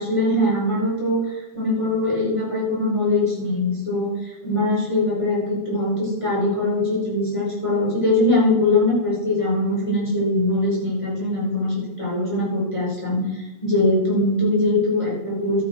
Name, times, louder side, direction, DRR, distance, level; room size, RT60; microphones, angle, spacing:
voice 1, 0.0-15.6, left 2 dB, 5° left, -6 dB, 5.1 m, -22 dB
13.5 x 10.5 x 4.8 m, 1.1 s
omnidirectional pair, 4.5 m